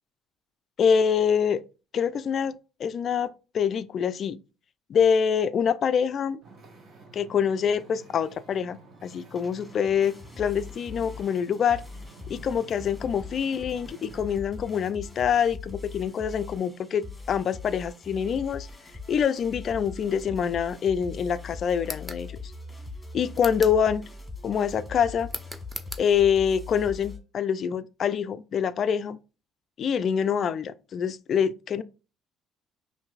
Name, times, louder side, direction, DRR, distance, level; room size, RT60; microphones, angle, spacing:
voice 1, 0.8-1.6 1.9-4.4 4.9-6.4 7.1-11.8 12.3-18.7 19.1-22.3 23.1-24.0 24.4-25.3 26.0-29.2 29.8-31.8, left 7 dB, 50° left, 0.3 m, -25 dB
Wind / Ocean, 6.4-14.3, right 3 dB, 55° right, 1.1 m, -51 dB
sound 1, 9.3-27.2, left 4 dB, 10° left, 1.4 m, -42 dB
sound 2, 21.8-22.2 23.3-23.8 25.3-26.1, equal, 10° right, 0.7 m, -38 dB
5.3 x 2.6 x 2.4 m
hypercardioid pair, 65°, 0 cm